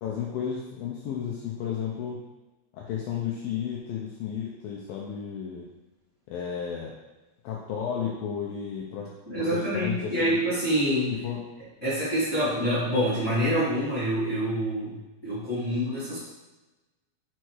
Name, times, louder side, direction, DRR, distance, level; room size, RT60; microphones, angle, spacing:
voice 1, 0.0-2.2 2.7-5.6 6.3-6.9 7.4-9.1 9.4-10.4 11.1-11.4, left 8 dB, 75° left, -2 dB, 2.3 m, -33 dB
voice 2, 9.3-11.1 11.8-15.0 15.2-16.2, equal, 30° left, -11 dB, 1.8 m, -26 dB
6.3 x 5.5 x 4.7 m, 1.1 s
omnidirectional pair, 4.8 m